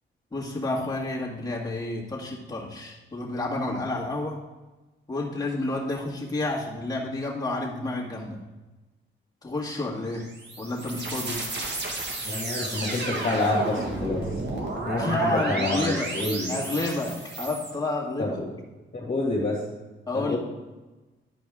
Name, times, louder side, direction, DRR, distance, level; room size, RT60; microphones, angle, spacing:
voice 1, 0.3-4.4 5.1-8.4 9.4-10.3 10.6-11.4 15.0-16.1 16.5-18.4 20.1-20.4, left 2 dB, 20° left, -4 dB, 2.0 m, -30 dB
sound 1, 10.1-17.7, right 2 dB, 55° right, 1.6 m, -32 dB
voice 2, 12.2-14.2 14.9-16.5 18.2-18.6 18.9-19.6 20.1-20.4, left 2 dB, 35° left, -7 dB, 2.2 m, -28 dB
11.0 x 5.2 x 3.6 m, 1.1 s
cardioid pair, 105°, 21 cm